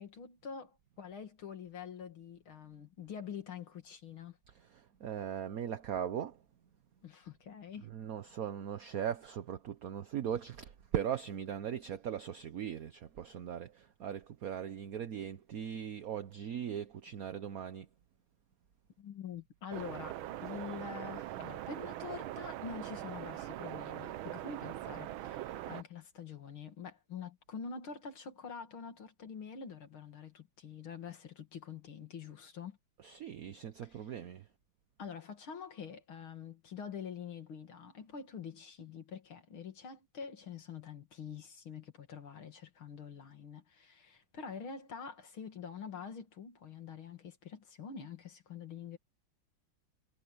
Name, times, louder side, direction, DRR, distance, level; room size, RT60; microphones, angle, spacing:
voice 1, 0.0-4.4 7.0-7.9 19.0-32.8 33.9-34.0 35.0-49.0, left 6 dB, 85° left, 3.2 m, -46 dB
voice 2, 4.5-6.4 7.8-17.9 33.0-34.4, right 9 dB, 55° right, 1.2 m, -39 dB
sound 1, 19.7-25.8, right 14 dB, 90° right, 1.5 m, -42 dB
omnidirectional pair, 2.2 m